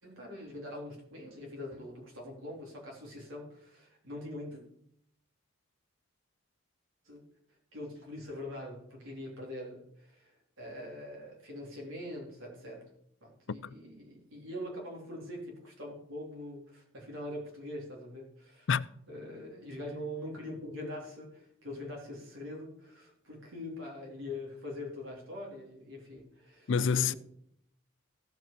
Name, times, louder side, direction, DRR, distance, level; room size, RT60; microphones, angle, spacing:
voice 1, 0.0-4.6 7.0-7.2 7.7-12.9 13.2-18.7 19.1-26.7 27.0-27.2, left 1 dB, 70° right, 3.1 m, -43 dB
voice 2, 26.7-27.1, left 6 dB, 60° left, 0.4 m, -28 dB
16.0 x 5.4 x 5.1 m
head